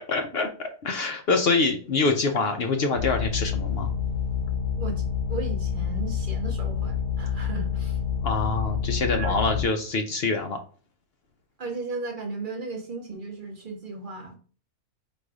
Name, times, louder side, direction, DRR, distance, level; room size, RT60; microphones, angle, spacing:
voice 1, 0.0-3.9 8.2-10.6, left 3 dB, 70° left, 5 dB, 0.6 m, -25 dB
sound 1, 2.9-9.7, left 7 dB, 85° left, 1.2 m, -28 dB
voice 2, 4.8-8.0 9.1-9.4 11.6-14.4, right 3 dB, 45° right, 2 dB, 0.7 m, -35 dB
4.1 x 2.5 x 4.6 m, 0.40 s
omnidirectional pair, 1.6 m